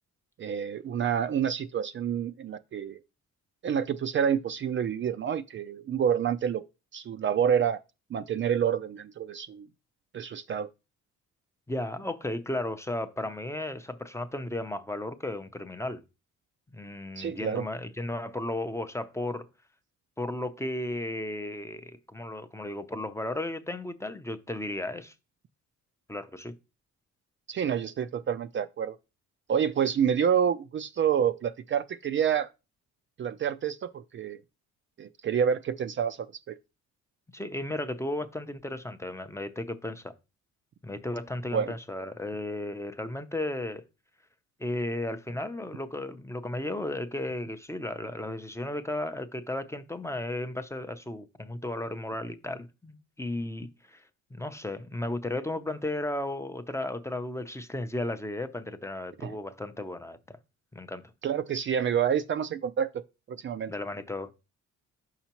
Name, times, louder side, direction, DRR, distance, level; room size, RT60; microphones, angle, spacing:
voice 1, 0.4-3.0 3.6-6.6 6.9-7.8 8.1-9.7 10.1-10.7 17.2-17.7 27.5-29.0 29.5-32.5 33.2-34.4 35.0-36.5 41.5-41.7 59.2-59.4 61.2-63.0 63.3-63.7, right 8 dB, 40° right, 0.4 m, -28 dB
voice 2, 11.7-16.0 16.7-19.5 20.2-25.1 26.1-26.5 37.3-40.1 40.8-43.8 44.6-54.0 54.3-60.4 60.7-61.0 63.7-64.3, left 1 dB, 10° left, 0.5 m, -34 dB
6.5 x 5.7 x 2.9 m
cardioid pair, 90°, 30 cm